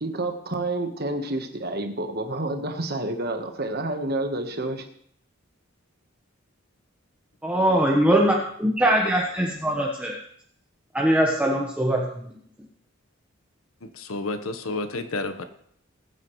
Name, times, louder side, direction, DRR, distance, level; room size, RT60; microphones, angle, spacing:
voice 1, 0.0-4.9, right 2 dB, 50° right, 6 dB, 1.3 m, -29 dB
voice 2, 7.4-10.1 10.9-12.0, right 1 dB, 5° right, -2 dB, 1.2 m, -21 dB
voice 3, 13.8-15.4, left 2 dB, 90° left, 8 dB, 1.2 m, -30 dB
20.5 x 9.5 x 3.2 m, 0.66 s
head